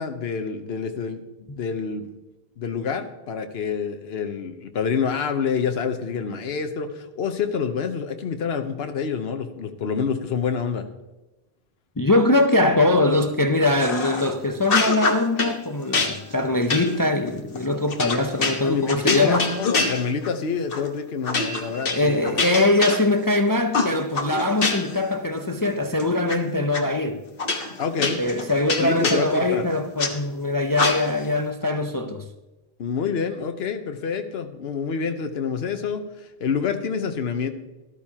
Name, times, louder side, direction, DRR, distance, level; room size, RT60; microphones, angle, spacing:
voice 1, 0.0-2.1 2.6-10.9 18.6-22.2 27.8-28.2 28.8-29.6 32.8-37.5, left 6 dB, 80° left, 1.1 m, -27 dB
voice 2, 12.0-19.5 21.8-27.2 28.2-32.3, left 2 dB, 25° left, 0.5 m, -22 dB
sound 1, 13.8-14.3 14.6-15.6 15.9-20.4 20.7-20.9 21.2-23.3 23.7-25.0 25.4-26.4 26.7-26.8 27.4-30.1 30.7-31.3, left 3 dB, 65° left, 1.4 m, -26 dB
13.5 x 12.5 x 2.9 m
omnidirectional pair, 1.0 m